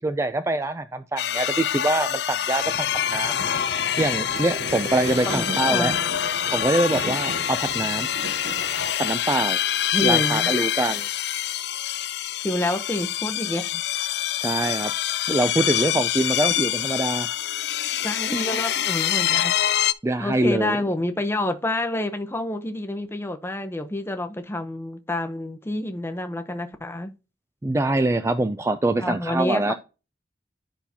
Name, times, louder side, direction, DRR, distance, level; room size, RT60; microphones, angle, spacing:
voice 1, 0.0-3.4 4.0-5.9 6.5-8.1 9.0-9.6 10.0-11.1 14.4-14.9 15.3-17.3 20.0-20.8 27.6-29.7, right 2 dB, 15° right, 0.4 m, -24 dB
sound 1, 1.2-19.9, left 11 dB, 65° left, 0.4 m, -26 dB
sound 2, 2.6-8.9, right 2 dB, 70° right, 0.8 m, -36 dB
voice 2, 5.3-5.9 9.9-10.5 12.4-13.8 17.9-19.5 20.2-27.1 29.0-29.7, left 1 dB, 15° left, 0.8 m, -28 dB
10.5 x 5.7 x 2.8 m
head